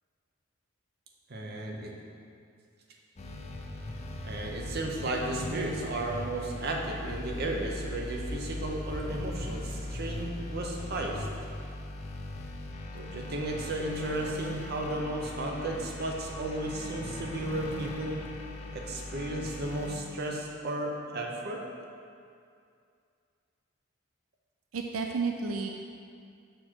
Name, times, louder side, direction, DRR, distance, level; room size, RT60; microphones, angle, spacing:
voice 1, 1.3-1.9 4.2-11.3 12.9-18.2 18.7-21.6, right 1 dB, 50° right, 0 dB, 0.8 m, -34 dB
sound 1, 3.2-20.0, left 1 dB, 35° left, 0.5 m, -39 dB
voice 2, 24.7-25.7, right 4 dB, 80° right, 2 dB, 0.4 m, -31 dB
6.0 x 4.5 x 4.4 m, 2.4 s
head